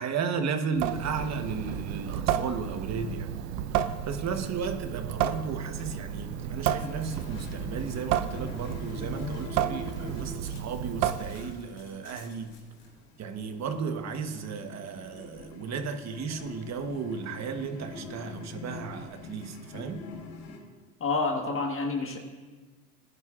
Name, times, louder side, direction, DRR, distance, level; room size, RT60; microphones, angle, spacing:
voice 1, 0.0-3.3 3.8-12.5 13.2-20.1, right 5 dB, 35° right, 1.2 m, -34 dB
Water tap faucet / Sink (filling or washing) / Drip, 0.7-11.7, right 10 dB, 65° right, 0.8 m, -32 dB
sound 1, 5.3-20.6, left 3 dB, 75° left, 4.4 m, -44 dB
voice 2, 21.0-22.2, left 3 dB, 25° left, 1.5 m, -28 dB
19.5 x 10.5 x 2.5 m
supercardioid pair, 110°, 47 cm